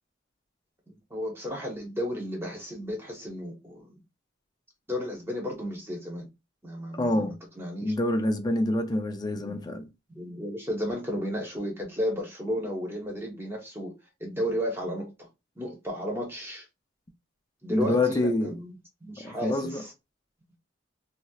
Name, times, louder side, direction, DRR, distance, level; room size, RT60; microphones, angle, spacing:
voice 1, 0.9-4.0 4.9-6.3 6.6-7.9 9.4-9.8 10.1-13.9 14.2-15.3 15.6-16.7 17.6-18.7 19.0-19.9, equal, 10° right, 0.9 m, -33 dB
voice 2, 7.0-7.4 7.8-9.9 17.7-18.5 19.2-19.8, left 1 dB, 20° left, 0.4 m, -26 dB
4.2 x 2.0 x 2.3 m
head